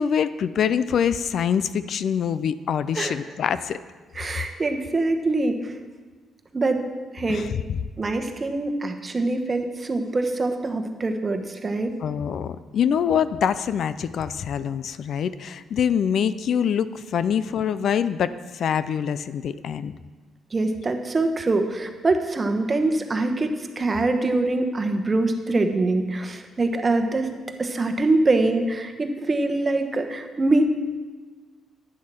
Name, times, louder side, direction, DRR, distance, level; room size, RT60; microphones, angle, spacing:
voice 1, 0.0-3.8 7.3-7.8 12.0-19.9, left 8 dB, 65° left, 14 dB, 0.4 m, -25 dB
voice 2, 4.1-5.7 6.5-6.8 7.1-7.5 8.0-11.9 20.5-27.3 27.6-30.7, right 2 dB, 30° right, 6 dB, 1.1 m, -24 dB
10.5 x 7.3 x 6.1 m, 1.4 s
cardioid pair, 90°, 0 cm